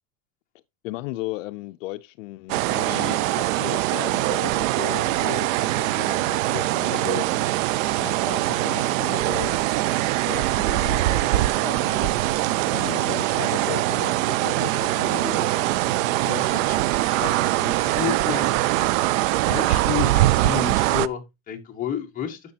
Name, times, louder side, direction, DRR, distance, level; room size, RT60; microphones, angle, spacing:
voice 1, 0.8-5.5 5.8-7.3 8.0-9.6 10.2-12.1 12.7-15.5, left 18 dB, 70° left, 0.6 m, -35 dB
sound 1, 2.5-21.1, right 16 dB, 75° right, 0.5 m, -23 dB
sound 2, 4.9-18.6, right 6 dB, 40° right, 1.1 m, -38 dB
voice 2, 16.2-18.4 19.5-22.5, left 8 dB, 20° left, 1.4 m, -31 dB
10.5 x 6.5 x 2.8 m
supercardioid pair, 155°, 40 cm